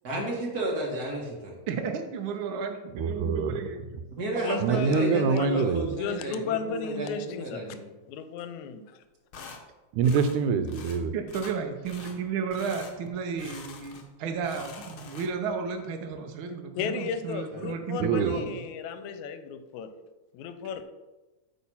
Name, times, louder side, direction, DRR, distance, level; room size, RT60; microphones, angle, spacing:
voice 1, 0.0-1.6 4.2-7.9 17.5-17.7, right 1 dB, 40° right, -1 dB, 1.7 m, -32 dB
voice 2, 1.7-3.9 4.5-4.6 11.1-18.5, right 5 dB, 70° right, 5 dB, 1.2 m, -33 dB
voice 3, 3.0-3.5 4.6-5.9 9.9-11.1 18.0-18.4, right 5 dB, 90° right, 11 dB, 2.1 m, -25 dB
voice 4, 4.4-7.6 8.1-8.8 10.5-10.7 16.8-19.9 20.3-20.8, left 6 dB, 80° left, 9 dB, 2.0 m, -34 dB
sound 1, 9.3-9.6 10.0-10.4 10.7-11.0 11.3-11.6 11.8-12.2 12.5-12.9 13.4-14.1 14.4-15.5, left 5 dB, 60° left, 1.4 m, -45 dB
8.3 x 4.8 x 5.5 m, 1.1 s
omnidirectional pair, 3.4 m